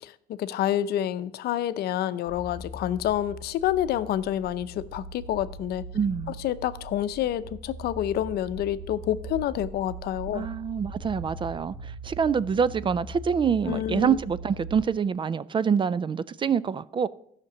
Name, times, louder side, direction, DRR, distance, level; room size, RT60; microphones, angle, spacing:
voice 1, 0.0-5.8 6.3-10.5 13.7-14.2, left 11 dB, 70° left, 0.7 m, -28 dB
sound 1, 2.3-14.8, right 1 dB, 60° right, 2.8 m, -41 dB
voice 2, 5.9-6.3 10.3-17.1, right 7 dB, 30° right, 0.4 m, -26 dB
12.5 x 5.9 x 7.1 m
cardioid pair, 110°, 17 cm